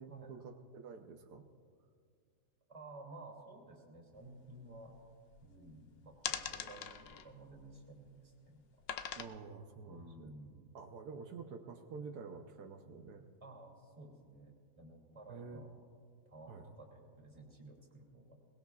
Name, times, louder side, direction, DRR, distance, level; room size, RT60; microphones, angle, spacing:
voice 1, 0.0-1.5 9.2-10.3 10.7-13.3 15.3-15.7 16.5-16.6, right 5 dB, 85° right, 4 dB, 1.4 m, -49 dB
voice 2, 2.7-5.0 5.4-8.9 9.9-10.7 13.4-15.8 16.2-18.4, right 2 dB, 20° right, -1 dB, 2.7 m, -54 dB
sound 1, 4.2-4.3 4.6-5.7 6.1-8.2 8.8-9.2, left 8 dB, 65° left, 0.6 m, -42 dB
22.0 x 20.0 x 2.4 m, 2.1 s
omnidirectional pair, 1.7 m